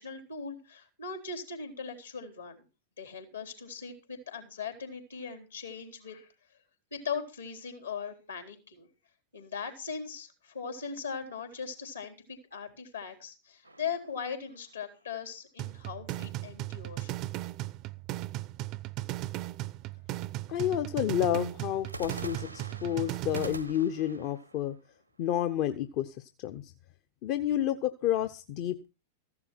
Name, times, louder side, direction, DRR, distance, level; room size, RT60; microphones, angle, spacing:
voice 1, 0.0-2.6 3.0-6.3 6.9-8.9 9.3-17.1, left 6 dB, 75° left, 6 dB, 3.9 m, -39 dB
sound 1, 13.6-15.1 21.8-25.8, right 2 dB, 90° right, 1.2 m, -46 dB
sound 2, 15.6-23.6, right 17 dB, 40° right, 0.6 m, -37 dB
voice 2, 20.5-24.7 25.2-26.7 27.2-28.9, left 11 dB, 45° left, 8 dB, 0.8 m, -30 dB
15.0 x 11.0 x 4.6 m, 0.32 s
figure-of-eight pair, 95°, 0 cm